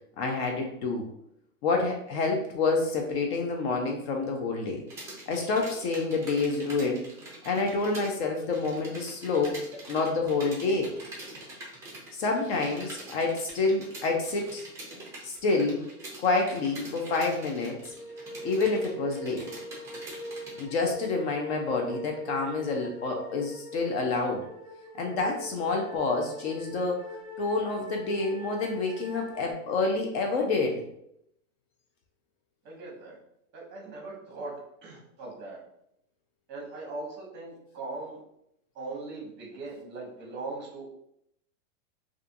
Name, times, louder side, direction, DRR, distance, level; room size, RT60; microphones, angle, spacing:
voice 1, 0.2-1.1 1.6-4.9 5.3-7.0 7.4-9.6 9.9-10.9 12.1-14.6 15.2-15.9 16.2-17.8 18.4-19.4 20.6-24.5 25.0-27.0 27.4-30.8, left 3 dB, 45° left, 1 dB, 0.5 m, -28 dB
sound 1, 4.9-8.1 8.4-20.6, right 1 dB, 5° right, 0.4 m, -45 dB
sound 2, 17.8-29.5, equal, 75° left, 0.8 m, -42 dB
voice 2, 32.6-33.2 33.5-34.5 34.8-35.6 36.5-38.2 38.7-40.8, right 3 dB, 25° right, -3 dB, 0.8 m, -40 dB
2.4 x 2.4 x 2.5 m, 0.76 s
hypercardioid pair, 130°, 43 cm